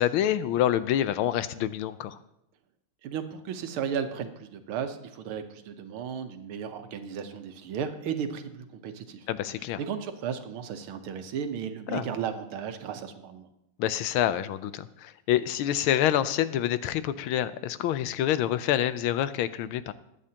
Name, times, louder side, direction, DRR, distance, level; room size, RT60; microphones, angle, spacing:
voice 1, 0.0-2.2 9.3-9.8 11.9-12.1 13.8-19.9, left 11 dB, 80° left, 14 dB, 1.5 m, -27 dB
voice 2, 3.0-13.5, right 7 dB, 90° right, 8 dB, 1.8 m, -35 dB
22.0 x 8.6 x 2.9 m, 0.82 s
omnidirectional pair, 2.3 m